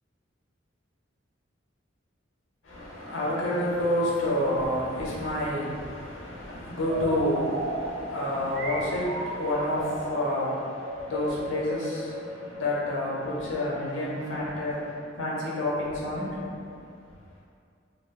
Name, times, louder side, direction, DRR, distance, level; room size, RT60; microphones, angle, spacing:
voice 1, 2.6-16.6, left 1 dB, 70° left, -6 dB, 0.8 m, -29 dB
sound 1, 6.8-13.5, right 1 dB, 55° right, 0.3 m, -35 dB
2.4 x 2.3 x 3.6 m, 2.4 s
head